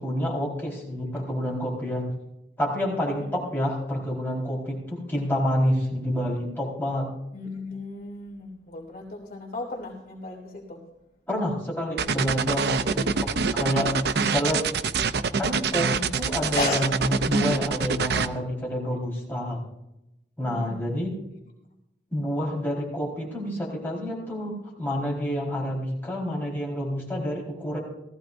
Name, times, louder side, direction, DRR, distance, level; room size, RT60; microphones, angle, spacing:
voice 1, 0.0-2.0 2.6-7.1 11.3-13.3 13.5-14.6 15.4-19.6 20.4-21.1 22.1-24.5 24.8-27.8, equal, 10° left, -4 dB, 4.3 m, -28 dB
voice 2, 7.3-10.8 16.5-16.9 20.4-20.9, left 3 dB, 55° left, -2 dB, 3.0 m, -34 dB
sound 1, 12.0-18.3, right 5 dB, 65° right, 0.6 m, -25 dB
18.0 x 14.5 x 2.6 m, 0.88 s
head